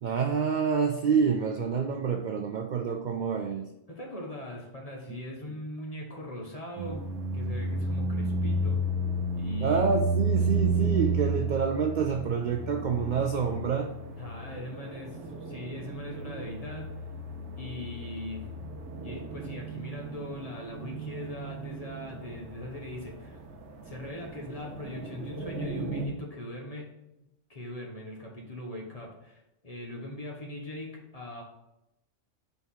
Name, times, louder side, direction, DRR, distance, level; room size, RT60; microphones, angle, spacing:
voice 1, 0.0-3.7 9.6-13.9, right 6 dB, 65° right, 5 dB, 0.4 m, -27 dB
voice 2, 3.9-7.1 7.3-8.8 9.3-9.8 14.2-16.9 17.6-18.5 19.0-23.4 23.8-26.9 27.2-31.4, left 1 dB, 30° left, -1 dB, 1.1 m, -40 dB
sound 1, 6.8-26.1, right 2 dB, 85° right, 1.2 m, -33 dB
4.5 x 4.1 x 5.5 m, 0.87 s
omnidirectional pair, 1.3 m